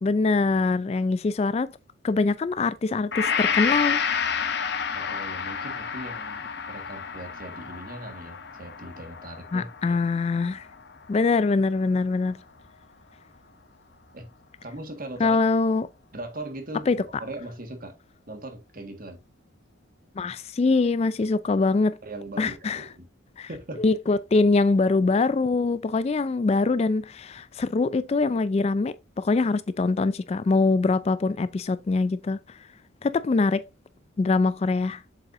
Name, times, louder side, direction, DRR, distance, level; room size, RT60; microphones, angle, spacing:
voice 1, 0.0-1.7 2.0-4.0 9.5-10.7 11.1-12.4 15.2-15.9 16.9-17.0 20.2-22.0 22.4-22.8 23.4-23.5 23.8-32.4 33.0-33.6 34.2-35.0, left 3 dB, 30° left, 0.3 m, -23 dB
Gong, 3.1-11.1, left 6 dB, 55° left, 0.9 m, -30 dB
voice 2, 4.9-10.0 14.1-14.3 14.6-15.4 16.1-16.9 17.2-18.0 18.3-19.2 22.0-23.1 23.5-23.8, right 1 dB, 45° right, 1.5 m, -39 dB
7.3 x 5.4 x 2.5 m
head